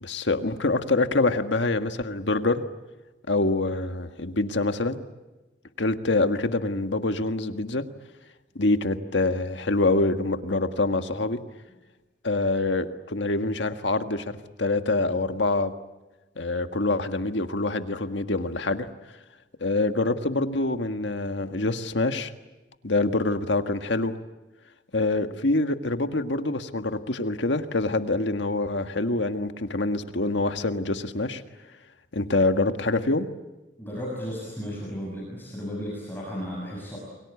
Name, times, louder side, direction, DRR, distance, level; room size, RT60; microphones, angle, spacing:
voice 1, 0.0-2.6 3.3-5.0 5.8-7.8 8.5-11.4 12.2-15.7 16.4-18.9 19.6-22.3 22.8-24.2 24.9-31.4 32.1-33.3, left 2 dB, 80° left, 7 dB, 1.6 m, -25 dB
voice 2, 33.8-37.0, equal, 10° left, -3 dB, 6.4 m, -34 dB
29.5 x 23.0 x 8.4 m, 1.1 s
head